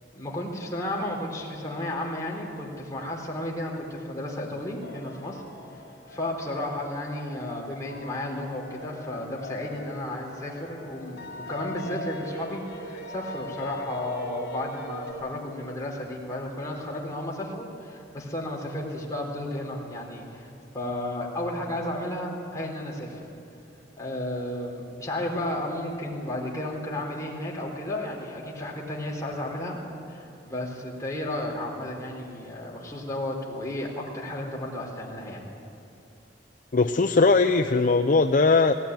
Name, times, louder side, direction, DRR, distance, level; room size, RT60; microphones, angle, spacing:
voice 1, 0.1-5.4 6.1-20.5 20.7-23.3 24.0-29.8 30.1-35.4, left 1 dB, 20° left, -2 dB, 3.9 m, -33 dB
sound 1, 4.8-15.1, left 1 dB, 65° left, 4.4 m, -41 dB
voice 2, 36.7-38.7, left 3 dB, 45° left, 6 dB, 0.6 m, -20 dB
18.0 x 18.0 x 9.5 m, 2.6 s
head